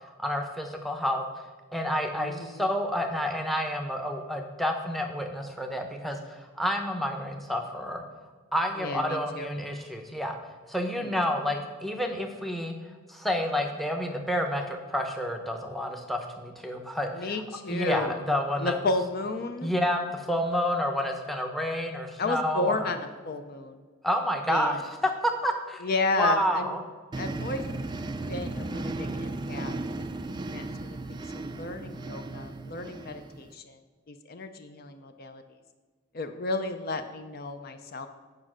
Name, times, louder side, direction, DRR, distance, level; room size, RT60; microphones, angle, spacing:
voice 1, 0.2-1.2 1.7-8.0 8.5-10.4 10.7-12.7 13.1-17.4 17.7-18.8 19.6-22.9 24.0-25.8 26.2-26.8, equal, ahead, 4 dB, 0.7 m, -29 dB
voice 2, 2.1-2.6 8.8-9.5 11.0-11.1 17.1-18.2 18.6-19.7 22.2-23.8 24.5-24.8 25.8-26.8 27.2-27.6 28.3-33.8 34.1-35.4 36.1-38.1, left 3 dB, 45° left, 7 dB, 0.5 m, -33 dB
sound 1, 27.1-33.5, right 2 dB, 20° right, 0.3 m, -35 dB
8.7 x 5.1 x 6.1 m, 1.5 s
head